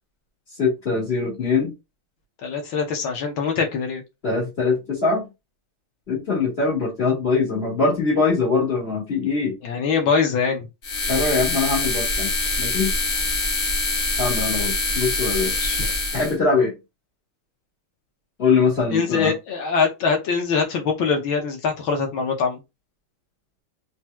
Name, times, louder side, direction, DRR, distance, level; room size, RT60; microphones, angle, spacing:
voice 1, 0.6-1.7 4.2-5.3 6.1-9.6 11.1-12.3 12.6-12.9 14.2-15.6 16.1-16.7 18.4-19.3, left 4 dB, 30° left, 2.0 m, -22 dB
voice 2, 2.4-4.0 9.6-10.7 15.4-15.9 18.9-22.6, left 5 dB, 70° left, 1.9 m, -23 dB
sound 1, 10.8-16.3, left 2 dB, 45° left, 1.3 m, -24 dB
4.4 x 4.1 x 2.2 m
omnidirectional pair, 2.4 m